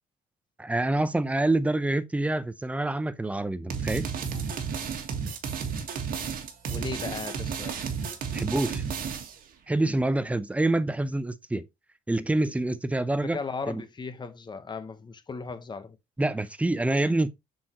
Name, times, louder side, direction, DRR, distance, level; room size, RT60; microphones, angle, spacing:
voice 1, 0.6-4.1 8.3-8.8 9.7-11.7 12.1-13.4 13.7-13.8 16.2-17.3, right 2 dB, 10° right, 0.6 m, -26 dB
sound 1, 3.7-9.4, right 6 dB, 60° right, 1.8 m, -32 dB
voice 2, 6.7-7.8 13.1-16.0, left 4 dB, 25° left, 1.0 m, -37 dB
7.5 x 4.5 x 3.0 m
cardioid pair, 110°, 17 cm